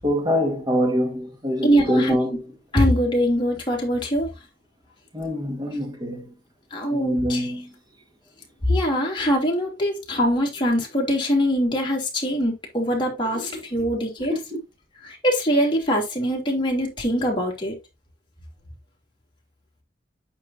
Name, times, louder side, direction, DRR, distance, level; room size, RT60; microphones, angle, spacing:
voice 1, 0.0-2.4 5.1-6.3 6.9-7.7 13.3-13.6 14.3-14.6, equal, 25° right, 1.6 m, -25 dB
voice 2, 1.6-2.2 2.7-4.3 6.7-7.5 8.7-14.3 15.0-17.7, equal, 30° left, 3.0 m, -23 dB
8.9 x 5.7 x 2.7 m
head